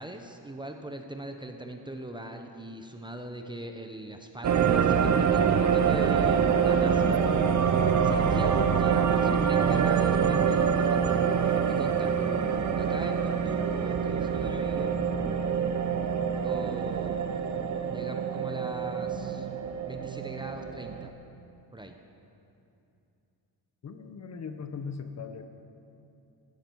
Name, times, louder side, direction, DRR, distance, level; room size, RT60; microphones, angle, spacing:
voice 1, 0.0-7.3 8.0-12.2 12.8-14.9 16.4-17.3 17.9-19.5 19.8-21.1 21.7-22.0, right 1 dB, 10° right, 5 dB, 0.7 m, -41 dB
sound 1, 4.4-21.1, right 7 dB, 45° right, 0.9 m, -25 dB
voice 2, 23.8-25.4, left 5 dB, 40° left, 7 dB, 0.9 m, -39 dB
16.0 x 13.0 x 4.6 m, 2.7 s
cardioid pair, 135°, 41 cm